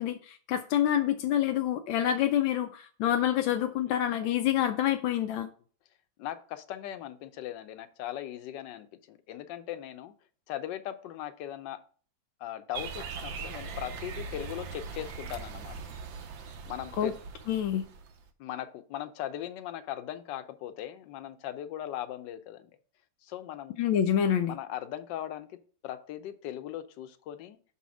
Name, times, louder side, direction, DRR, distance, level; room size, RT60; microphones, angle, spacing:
voice 1, 0.0-5.5 17.0-17.1 17.5-17.8 23.8-24.5, left 10 dB, 90° left, 1.4 m, -27 dB
voice 2, 6.2-10.1 10.5-11.8 12.4-15.7 16.7-17.1 18.4-22.7 23.2-23.8 24.5-25.6 25.8-27.6, left 12 dB, 75° left, 1.3 m, -39 dB
sound 1, 12.7-18.3, right 5 dB, 85° right, 1.5 m, -41 dB
6.2 x 4.2 x 6.0 m
omnidirectional pair, 2.0 m